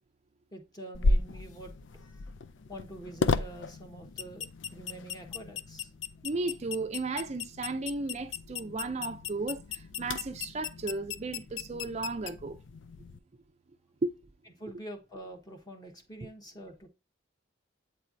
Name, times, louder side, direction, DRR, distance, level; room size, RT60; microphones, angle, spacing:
voice 1, 0.5-2.3 2.7-5.9 14.6-16.9, right 1 dB, 20° left, 1.2 m, -46 dB
sound 1, 0.9-13.2, left 3 dB, 75° left, 0.4 m, -35 dB
voice 2, 6.2-12.6 14.0-14.1 16.2-16.3, right 3 dB, 35° right, 0.5 m, -34 dB
8.2 x 4.4 x 2.6 m
head